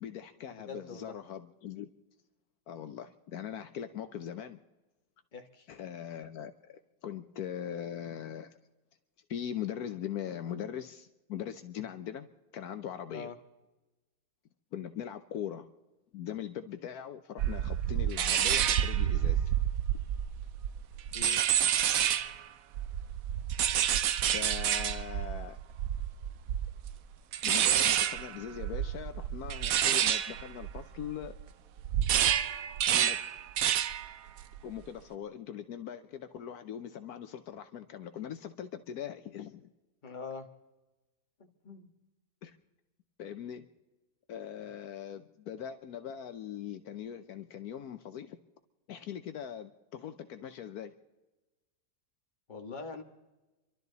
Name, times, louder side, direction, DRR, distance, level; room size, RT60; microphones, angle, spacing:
voice 1, 0.0-1.9 2.7-4.6 5.7-8.5 9.3-12.3 12.5-13.3 14.7-15.7 16.1-19.5 21.8-21.9 24.3-25.6 27.4-31.4 32.9-33.2 34.6-39.7 42.4-42.5 43.2-43.6 44.3-48.4 48.9-50.9, left 9 dB, 75° left, 9 dB, 1.3 m, -41 dB
voice 2, 0.6-1.1 5.3-5.7 13.1-13.3 21.1-21.4 40.0-40.5 41.6-41.9 52.5-53.0, left 4 dB, 30° left, 4 dB, 1.6 m, -43 dB
sound 1, 17.4-22.4 22.7-31.4 31.8-34.1 34.4-34.8, right 10 dB, 65° right, 1.1 m, -29 dB
29.0 x 12.5 x 4.0 m, 1.1 s
omnidirectional pair, 1.7 m